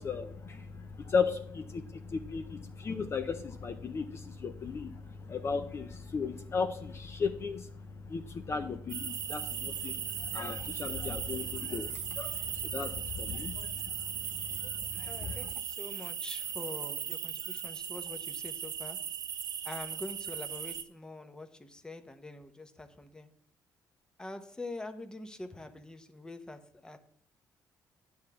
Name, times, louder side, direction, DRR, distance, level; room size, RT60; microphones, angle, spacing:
voice 1, 0.0-14.1 14.5-15.4, left 5 dB, 40° left, 7 dB, 0.6 m, -36 dB
sound 1, 8.9-20.8, right 9 dB, 65° right, 0.7 m, -38 dB
voice 2, 15.1-19.0 19.6-23.3 24.2-27.0, left 2 dB, 10° left, 7 dB, 0.8 m, -45 dB
9.6 x 3.5 x 6.7 m, 0.64 s
cardioid pair, 110°, 7 cm